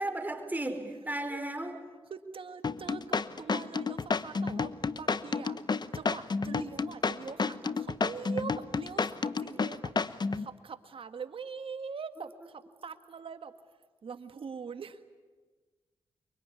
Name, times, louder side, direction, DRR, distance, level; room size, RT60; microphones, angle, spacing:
voice 1, 0.0-1.8, right 1 dB, 15° right, 7 dB, 4.6 m, -34 dB
voice 2, 2.1-3.0 3.4-5.6 5.9-13.5 14.0-15.0, right 5 dB, 60° right, 9 dB, 1.8 m, -43 dB
sound 1, 2.6-10.5, left 4 dB, 45° left, 1.0 m, -30 dB
24.0 x 24.0 x 9.8 m, 1.4 s
supercardioid pair, 50°, 10 cm